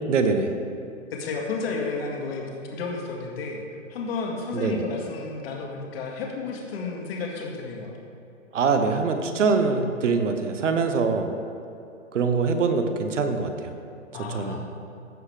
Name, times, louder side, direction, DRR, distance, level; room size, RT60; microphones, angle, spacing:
voice 1, 0.1-0.5 4.5-4.8 8.5-11.3 12.1-13.7 14.3-14.6, right 4 dB, 70° right, 7 dB, 1.1 m, -23 dB
voice 2, 1.1-3.6 3.9-8.0 14.1-14.8, left 4 dB, 50° left, 0 dB, 1.8 m, -32 dB
15.0 x 5.7 x 3.3 m, 2.8 s
hypercardioid pair, 135°, 38 cm